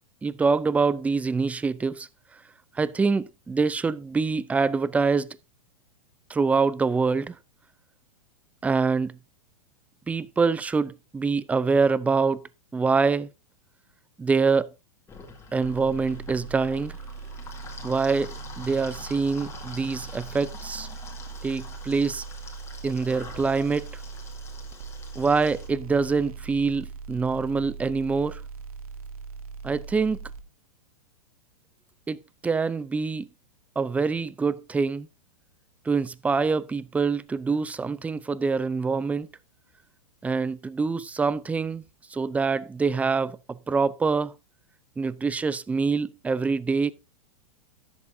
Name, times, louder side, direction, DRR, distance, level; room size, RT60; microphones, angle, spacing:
voice 1, 0.2-2.1 2.8-5.4 6.3-7.4 8.6-9.2 10.1-12.4 12.7-13.3 14.2-14.7 15.5-17.0 17.8-20.9 21.4-22.2 22.8-24.0 25.2-28.4 29.6-30.3 32.1-33.3 33.8-35.1 35.9-39.3 40.2-41.8 42.1-44.3 45.0-46.9, right 4 dB, 10° right, 0.5 m, -25 dB
sound 1, 15.1-25.7, left 4 dB, 15° left, 3.4 m, -45 dB
sound 2, 15.6-30.4, right 5 dB, 75° right, 1.7 m, -40 dB
13.0 x 11.0 x 2.7 m
hypercardioid pair, 130°, 19 cm